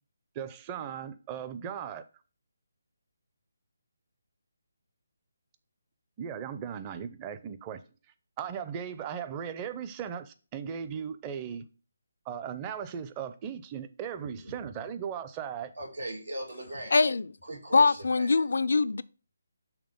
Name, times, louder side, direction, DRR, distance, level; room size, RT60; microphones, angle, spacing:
voice 1, 0.4-2.0 6.2-7.8 8.4-11.6 12.3-15.7, right 8 dB, 20° right, 0.5 m, -37 dB
voice 2, 15.8-16.9 17.5-18.4, right 1 dB, 90° right, 1.8 m, -39 dB
voice 3, 16.9-17.3 17.7-19.0, left 4 dB, 70° left, 0.3 m, -23 dB
5.9 x 3.4 x 5.1 m
figure-of-eight pair, 150°, 0 cm